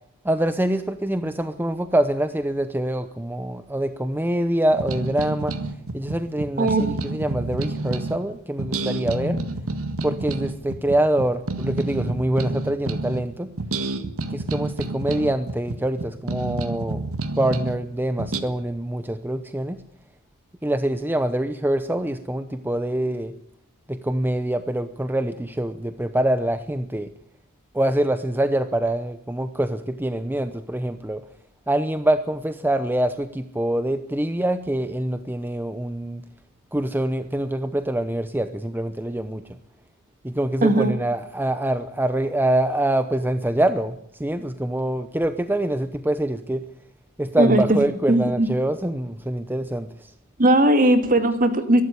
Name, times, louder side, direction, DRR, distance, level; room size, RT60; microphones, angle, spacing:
voice 1, 0.2-5.5 5.9-9.4 10.0-13.5 14.3-17.0 17.4-19.8 20.6-23.3 23.9-27.1 27.7-31.2 31.7-36.2 36.7-39.6 40.2-46.6 47.2-50.1, right 1 dB, 10° right, 10 dB, 0.8 m, -25 dB
sound 1, 4.7-8.2 8.6-13.3 13.6-17.8 18.2-18.4, right 2 dB, 65° right, 1.8 m, -29 dB
voice 2, 6.6-6.9 40.6-40.9 47.4-47.6 48.1-48.5 50.4-51.8, right 1 dB, 40° right, 9 dB, 2.2 m, -18 dB
23.0 x 12.5 x 9.8 m, 0.73 s
head